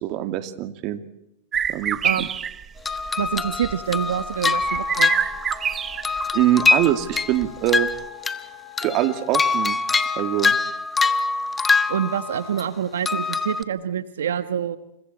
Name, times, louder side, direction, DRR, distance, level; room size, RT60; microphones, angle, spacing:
voice 1, 0.0-1.0 1.7-2.3 6.3-7.9 8.8-9.8 10.2-10.5, right 13 dB, 45° right, 9 dB, 2.3 m, -23 dB
sound 1, 1.5-6.4 6.7-7.7, right 8 dB, 25° right, 0.9 m, -27 dB
voice 2, 2.0-2.4 3.2-5.1 11.9-14.8, right 9 dB, 85° right, 12 dB, 1.3 m, -26 dB
sound 2, 2.9-5.7 6.0-8.5 8.8-12.6 13.1-13.6, left 4 dB, 15° left, 1.3 m, -24 dB
sound 3, 4.7-10.6, left 13 dB, 65° left, 3.5 m, -44 dB
29.5 x 26.5 x 4.3 m, 0.83 s
hypercardioid pair, 125°, 0 cm